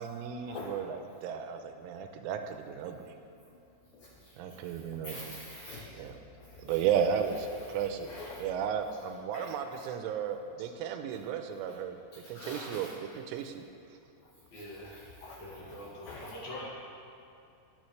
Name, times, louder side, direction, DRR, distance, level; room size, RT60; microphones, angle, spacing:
voice 1, 0.0-3.1 4.4-5.4 5.9-6.2 6.6-8.1 8.4-12.0 12.3-13.6, right 8 dB, 85° right, 7 dB, 3.1 m, -34 dB
voice 2, 5.0-6.8 8.0-8.4 9.3-9.5 9.7-9.8 12.1-12.9 14.5-14.7 14.9-16.3, left 2 dB, 80° left, -2 dB, 2.3 m, -46 dB
voice 3, 14.5-15.0 15.4-16.7, left 1 dB, 55° left, -6 dB, 3.4 m, -44 dB
21.0 x 6.9 x 3.2 m, 2.6 s
omnidirectional pair, 5.6 m